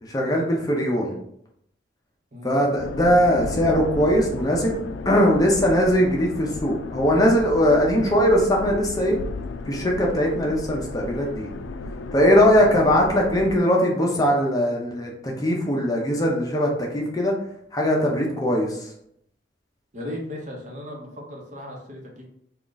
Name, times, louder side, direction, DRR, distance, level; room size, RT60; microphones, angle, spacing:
voice 1, 0.0-1.2 2.4-4.8 5.1-9.2 9.7-11.5 12.1-17.3 17.7-18.9, equal, 20° left, -1 dB, 0.6 m, -20 dB
sound 1, 2.8-13.6, left 3 dB, 85° left, 0.3 m, -34 dB
voice 2, 19.9-22.3, left 1 dB, 40° right, 0 dB, 0.9 m, -36 dB
3.7 x 2.4 x 3.8 m, 0.72 s
head